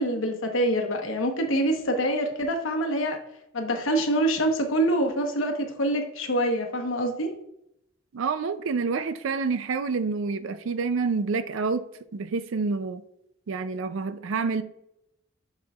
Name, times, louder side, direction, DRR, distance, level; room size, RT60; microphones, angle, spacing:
voice 1, 0.0-3.2 3.5-7.3, right 1 dB, 75° left, 1.0 m, -25 dB
voice 2, 8.1-11.8 12.1-13.0 13.5-14.6, right 4 dB, 75° right, 0.4 m, -28 dB
7.7 x 5.5 x 2.4 m
head